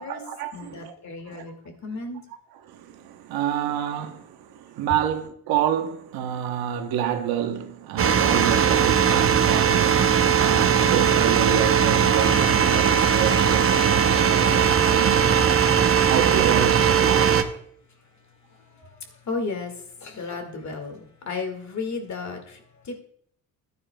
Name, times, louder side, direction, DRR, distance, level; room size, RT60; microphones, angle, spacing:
voice 1, 0.0-0.9 1.3-1.4 2.7-15.4 16.0-17.5, right 9 dB, 90° right, 1.0 m, -29 dB
voice 2, 0.5-1.6 1.8-2.2 18.0-23.0, left 4 dB, 50° left, 2.0 m, -34 dB
sound 1, 8.0-17.4, right 7 dB, 40° right, 0.8 m, -19 dB
14.0 x 9.6 x 2.3 m
cardioid pair, 80°, 36 cm